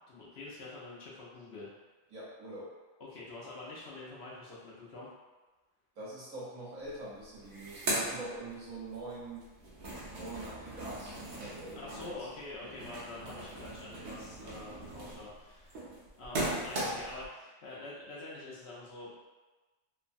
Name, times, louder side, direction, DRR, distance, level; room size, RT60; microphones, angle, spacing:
voice 1, 0.1-1.7 3.0-5.1 11.7-15.8 16.2-19.1, left 2 dB, 60° left, -6 dB, 0.8 m, -46 dB
voice 2, 2.1-2.7 6.0-9.5 10.1-12.2 12.6-12.7, right 2 dB, 85° right, -8 dB, 1.4 m, -44 dB
sound 1, 6.8-6.9 7.2-9.0 9.4-17.3, right 1 dB, 55° right, 0.8 m, -39 dB
3.0 x 2.1 x 2.5 m, 1.2 s
omnidirectional pair, 1.4 m